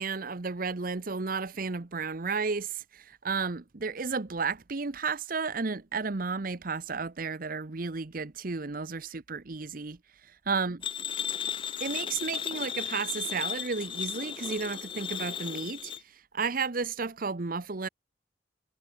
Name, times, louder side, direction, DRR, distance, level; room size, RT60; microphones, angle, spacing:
voice 1, 0.0-10.0 10.5-10.8 11.8-17.9, right 4 dB, 50° right, 0.9 m, -33 dB
sound 1, 10.8-16.0, left 8 dB, 30° left, 0.4 m, -35 dB
head